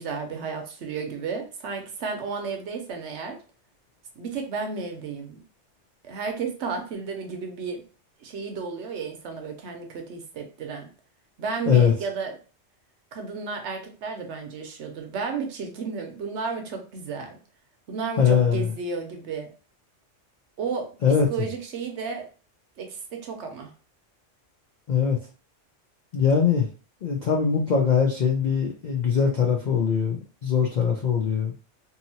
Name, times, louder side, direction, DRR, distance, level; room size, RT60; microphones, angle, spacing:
voice 1, 0.0-3.4 4.2-5.4 6.0-7.8 8.2-10.9 11.4-12.3 13.1-17.4 17.9-19.5 20.6-20.9 21.3-22.3 22.8-23.7, right 5 dB, 70° right, 4 dB, 0.9 m, -33 dB
voice 2, 18.2-18.7 21.0-21.3 24.9-25.2 26.1-26.7 27.0-31.5, left 6 dB, 65° left, 1 dB, 0.4 m, -21 dB
2.7 x 2.7 x 2.7 m, 0.37 s
omnidirectional pair, 1.3 m